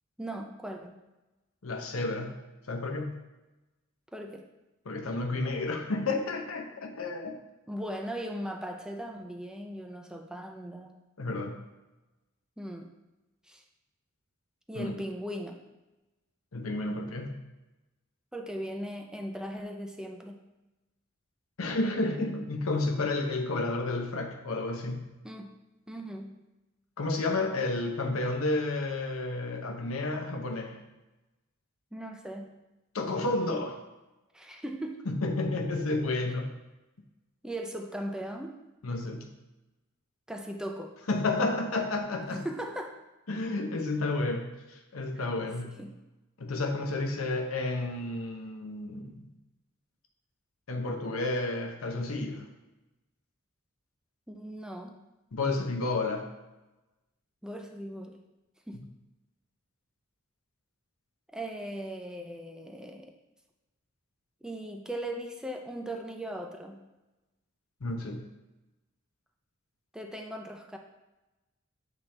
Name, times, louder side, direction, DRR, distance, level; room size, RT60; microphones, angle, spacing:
voice 1, 0.2-1.0 4.1-4.5 7.7-11.0 12.6-12.9 13.5-13.6 14.7-15.6 18.3-20.4 25.2-25.5 25.9-26.4 31.9-32.5 34.3-35.1 37.4-38.6 40.3-41.0 42.3-43.0 45.2-45.3 45.8-46.0 54.3-55.0 57.4-58.2 58.7-58.9 61.3-63.1 64.4-66.8 69.9-70.8, right 1 dB, 5° right, 3 dB, 0.4 m, -38 dB
voice 2, 1.6-2.4 2.7-3.2 4.9-7.4 11.2-11.6 14.7-15.0 16.5-17.4 21.6-25.1 27.0-30.8 32.9-33.8 35.1-36.5 38.8-39.3 41.1-42.4 43.3-45.8 46.4-49.3 50.7-52.5 55.3-56.3 67.8-68.3, left 2 dB, 90° left, 3 dB, 0.8 m, -31 dB
7.2 x 4.1 x 3.3 m, 1.0 s
head